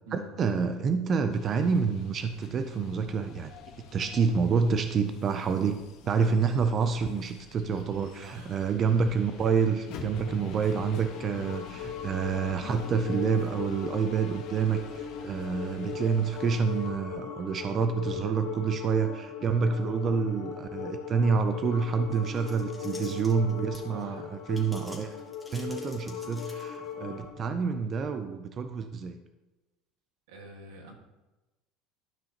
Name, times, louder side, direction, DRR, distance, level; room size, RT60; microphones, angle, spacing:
voice 1, 0.1-3.5 3.9-25.2 25.5-29.2, right 5 dB, 35° right, 8 dB, 0.4 m, -28 dB
sound 1, 1.3-16.9, left 6 dB, 60° left, 1.1 m, -47 dB
voice 2, 8.2-8.6 23.9-24.3 30.3-30.9, right 3 dB, 85° right, 2 dB, 1.7 m, -45 dB
sound 2, 9.7-27.3, left 7 dB, 80° left, 1.2 m, -39 dB
sound 3, 22.1-24.0 24.5-26.9, left 2 dB, 10° left, 1.6 m, -49 dB
12.0 x 5.6 x 2.9 m, 1.1 s
supercardioid pair, 135°, 0 cm